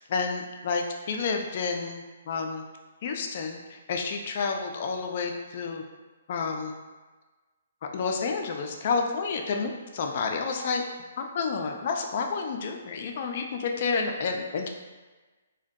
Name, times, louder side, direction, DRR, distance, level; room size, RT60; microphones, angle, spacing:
voice 1, 0.1-2.6 3.0-5.8 6.3-6.7 7.9-10.8 11.2-14.7, left 5 dB, 50° left, 3 dB, 0.3 m, -30 dB
2.6 x 2.1 x 2.2 m, 1.3 s
hypercardioid pair, 140°, 0 cm